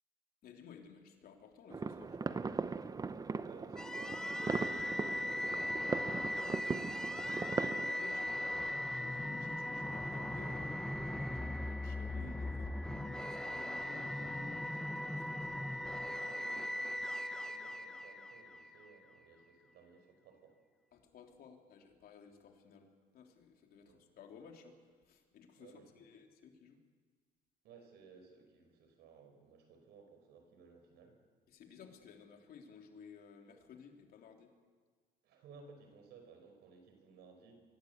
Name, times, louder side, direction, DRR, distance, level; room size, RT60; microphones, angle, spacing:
voice 1, 0.4-2.4 7.8-8.5 8.9-15.8 20.9-26.8 31.5-34.6, left 6 dB, 65° left, 3 dB, 3.4 m, -56 dB
sound 1, 1.7-7.9, right 4 dB, 20° right, 0.8 m, -39 dB
voice 2, 3.4-7.5 8.2-8.8 15.6-20.6 23.8-24.0 25.6-26.0 27.6-31.2 35.2-37.6, right 5 dB, 80° right, 5 dB, 5.3 m, -59 dB
sound 2, 3.8-18.9, left 1 dB, 5° left, 1.2 m, -39 dB
24.0 x 17.0 x 8.1 m, 1.5 s
cardioid pair, 110°, 17 cm